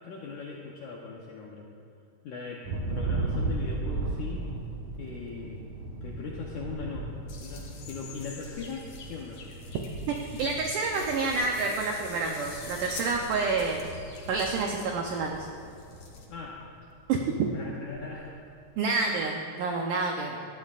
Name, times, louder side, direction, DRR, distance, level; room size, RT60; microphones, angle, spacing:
voice 1, 0.0-1.7 2.2-4.5 5.0-7.1 7.4-9.4 14.8-14.9 16.3-16.6 17.5-18.3 19.1-19.2 20.3-20.4, left 4 dB, 80° left, -3 dB, 1.7 m, -40 dB
Thunder, 2.6-15.5 15.9-16.4 16.8-18.2, right 3 dB, 65° right, 1.9 m, -37 dB
sound 1, 7.3-16.3, left 4 dB, 60° left, 2.2 m, -45 dB
voice 2, 10.1-13.9 14.3-15.5 17.1-17.2 18.8-20.4, right 4 dB, 90° right, 1 dB, 1.8 m, -28 dB
18.5 x 12.5 x 2.4 m, 2.4 s
omnidirectional pair, 4.7 m